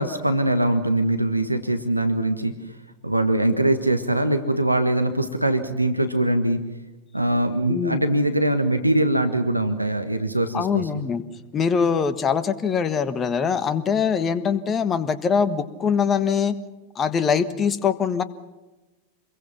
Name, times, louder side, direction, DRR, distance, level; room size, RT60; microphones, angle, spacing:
voice 1, 0.0-2.5 3.0-6.6 7.1-11.1, right 1 dB, 85° right, 8 dB, 1.5 m, -22 dB
voice 2, 7.7-8.0 10.5-11.2 11.5-16.5 16.9-18.2, left 6 dB, 25° left, 13 dB, 1.5 m, -23 dB
27.0 x 22.0 x 5.9 m, 1.1 s
figure-of-eight pair, 90°, 0 cm